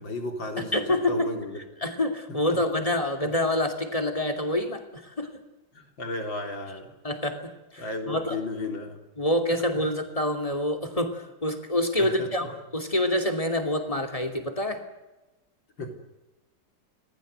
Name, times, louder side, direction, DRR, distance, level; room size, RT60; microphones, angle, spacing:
voice 1, 0.0-1.6 2.5-2.6 5.7-6.9 7.8-9.0 9.5-9.6 12.0-12.5 15.8-16.0, left 2 dB, 90° left, 4 dB, 4.4 m, -34 dB
voice 2, 0.6-1.3 1.8-5.3 7.0-8.4 9.2-12.4 12.7-14.8, left 1 dB, 20° left, 5 dB, 2.9 m, -27 dB
26.5 x 19.5 x 8.1 m, 1.0 s
omnidirectional pair, 2.0 m